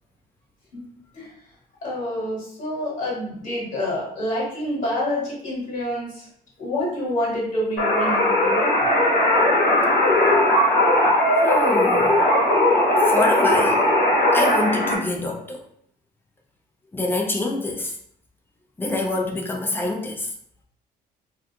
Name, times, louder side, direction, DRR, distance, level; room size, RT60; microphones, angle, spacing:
voice 1, 1.8-6.3 6.6-8.7, left 1 dB, 50° left, -5 dB, 1.3 m, -27 dB
sound 1, 7.8-15.0, left 1 dB, 65° left, 1.0 m, -18 dB
voice 2, 11.3-12.2 13.1-13.9 14.3-15.7 16.9-17.9 18.8-20.3, left 2 dB, 10° left, 0 dB, 0.5 m, -26 dB
2.5 x 2.3 x 2.7 m, 0.65 s
cardioid pair, 110°, 17 cm